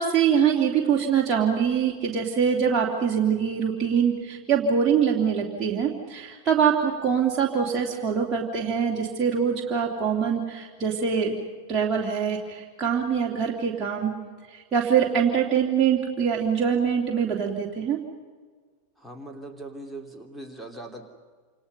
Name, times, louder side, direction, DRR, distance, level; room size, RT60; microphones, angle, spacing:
voice 1, 0.0-11.4 11.7-14.1 14.7-18.0, right 7 dB, 20° right, -3 dB, 3.0 m, -24 dB
voice 2, 19.0-21.0, right 2 dB, ahead, 2 dB, 3.2 m, -40 dB
28.5 x 28.0 x 5.6 m, 1.5 s
figure-of-eight pair, 90°, 0 cm